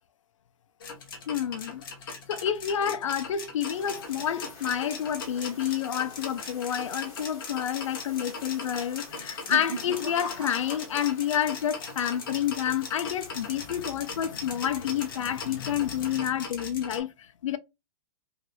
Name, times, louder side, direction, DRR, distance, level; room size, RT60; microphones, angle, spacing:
sound 1, 0.8-17.0, left 4 dB, 40° left, 0.8 m, -40 dB
voice 1, 1.3-17.6, left 9 dB, 60° left, 0.5 m, -29 dB
sound 2, 3.5-6.0 6.3-6.6 6.9-7.0 7.8-8.2 9.0-11.5 11.7-12.3, right 4 dB, 5° right, 0.8 m, -42 dB
sound 3, 3.7-16.2, left 3 dB, 20° left, 1.3 m, -50 dB
3.2 x 3.0 x 2.5 m
hypercardioid pair, 180°, 18 cm